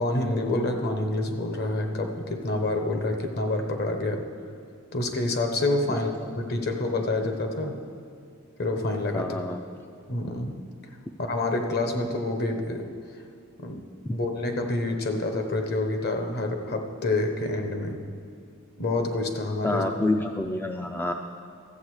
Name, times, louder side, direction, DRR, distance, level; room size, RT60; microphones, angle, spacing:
voice 1, 0.0-4.2 4.9-6.1 6.4-7.8 8.6-9.3 10.1-10.6 11.2-12.9 13.6-13.8 14.1-18.0 18.8-19.8, left 2 dB, 50° left, 5 dB, 1.0 m, -27 dB
voice 2, 9.1-9.6 14.0-14.1 19.6-21.1, left 2 dB, 10° left, 4 dB, 0.3 m, -28 dB
13.5 x 7.7 x 4.8 m, 2.3 s
head